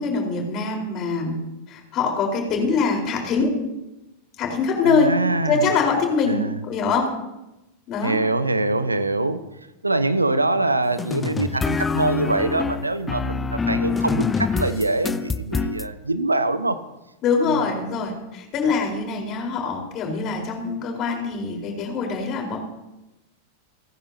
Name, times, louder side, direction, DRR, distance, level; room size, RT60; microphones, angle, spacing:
voice 1, 0.0-1.4 1.7-3.6 4.4-5.1 5.4-7.1 7.9-8.2 17.2-22.6, left 4 dB, 35° left, 1 dB, 4.2 m, -23 dB
voice 2, 4.8-5.7 6.3-6.5 8.0-9.4 9.8-16.8, right 2 dB, 80° right, 14 dB, 0.8 m, -24 dB
sound 1, 11.0-15.9, left 5 dB, 15° left, 0.5 m, -25 dB
29.5 x 10.5 x 2.8 m, 0.96 s
figure-of-eight pair, 90°, 0 cm